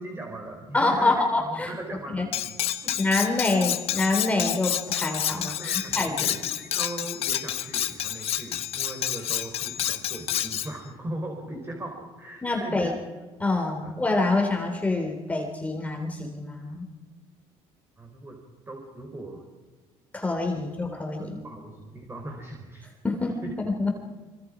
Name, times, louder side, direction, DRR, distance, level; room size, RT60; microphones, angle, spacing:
voice 1, 0.0-2.9 5.4-13.0 13.8-13.9 18.0-18.4 18.7-19.4 20.6-20.7 21.2-22.9 23.4-23.6, right 1 dB, 20° right, 2 dB, 4.5 m, -39 dB
voice 2, 0.7-1.7 2.1-2.3 2.9-5.5 5.9-6.3 12.4-12.9 13.4-16.9 20.1-21.4 23.0-23.3 23.6-23.9, left 2 dB, 10° left, 3 dB, 3.4 m, -26 dB
Cutlery silverware, 2.3-10.7, left 11 dB, 60° left, 1.3 m, -29 dB
26.0 x 25.5 x 5.1 m, 1.4 s
cardioid pair, 105°, 12 cm